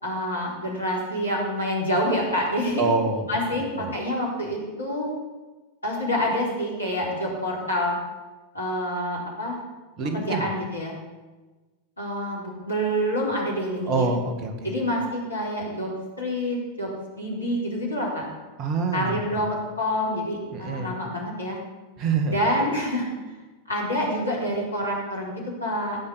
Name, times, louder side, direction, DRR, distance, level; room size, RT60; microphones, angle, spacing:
voice 1, 0.0-2.9 3.3-5.1 5.8-7.9 8.5-9.6 10.1-11.0 12.0-14.1 14.6-15.9 16.2-18.2 18.9-21.6 22.3-23.4 23.7-26.0, equal, 80° left, -3 dB, 4.2 m, -27 dB
voice 2, 2.8-3.3 3.8-3.9 10.0-10.5 13.9-14.7 18.6-19.4 20.5-20.9 22.0-22.7, right 4 dB, 35° right, 6 dB, 1.9 m, -26 dB
16.0 x 5.9 x 8.5 m, 1.2 s
figure-of-eight pair, 90°, 0 cm